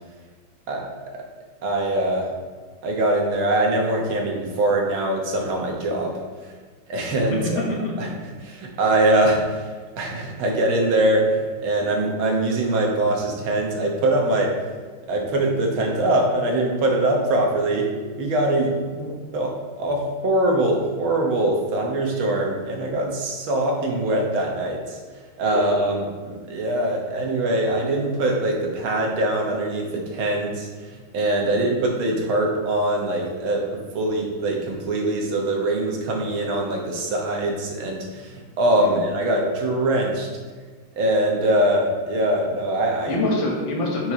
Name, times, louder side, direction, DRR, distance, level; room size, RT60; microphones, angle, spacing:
voice 1, 1.6-2.3 2.8-6.2 6.4-6.5 6.9-7.6 8.0-8.1 8.4-14.5 15.1-17.9 18.2-25.0 25.4-40.3 41.0-43.2, right 1 dB, 70° right, 0 dB, 1.8 m, -23 dB
voice 2, 7.4-7.9 25.5-25.6 31.4-31.7 38.8-39.0 43.1-44.1, left 2 dB, 65° left, -2 dB, 2.0 m, -25 dB
5.4 x 4.6 x 4.9 m, 1.5 s
omnidirectional pair, 2.4 m